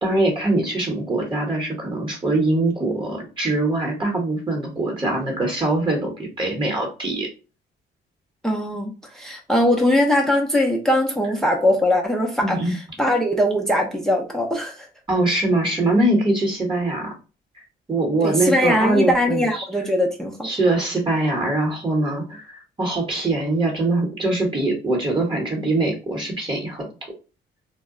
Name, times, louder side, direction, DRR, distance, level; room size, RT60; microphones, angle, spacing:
voice 1, 0.0-7.3 12.4-12.7 15.1-17.1 17.6-19.6 20.4-26.9, right 2 dB, 25° right, 2 dB, 1.0 m, -23 dB
voice 2, 8.4-12.6 13.0-14.9 18.2-20.5, left 1 dB, ahead, 2 dB, 0.5 m, -21 dB
2.2 x 2.0 x 3.6 m, 0.33 s
cardioid pair, 90°, 20 cm